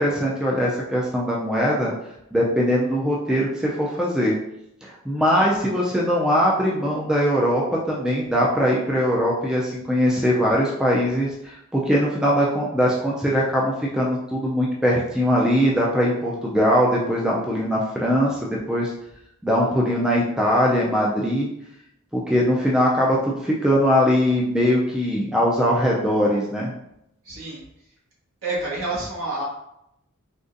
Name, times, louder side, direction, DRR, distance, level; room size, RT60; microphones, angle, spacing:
voice 1, 0.0-1.9 2.3-4.3 4.8-18.9 19.4-21.5 22.1-26.7, equal, 5° right, -4 dB, 0.3 m, -21 dB
voice 2, 27.2-27.6 28.4-29.4, right 2 dB, 65° right, -7 dB, 1.3 m, -29 dB
3.7 x 2.4 x 2.5 m, 0.82 s
head